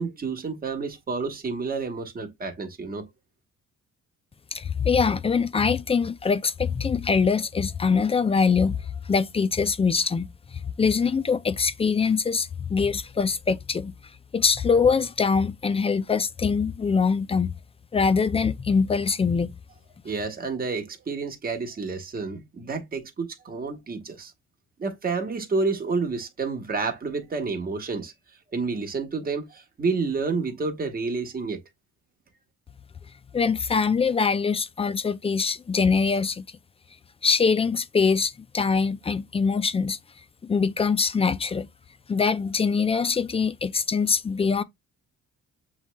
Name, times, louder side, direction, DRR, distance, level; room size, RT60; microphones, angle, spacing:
voice 1, 0.0-3.1 20.0-24.3 24.8-28.1 28.5-31.6, right 4 dB, 30° right, 1.1 m, -29 dB
voice 2, 4.5-8.8 9.1-13.9 14.3-17.5 17.9-19.5 33.3-36.5 37.2-40.0 40.4-41.7 42.1-44.6, left 5 dB, 20° left, 0.4 m, -23 dB
7.2 x 3.1 x 2.2 m
cardioid pair, 90°, 30 cm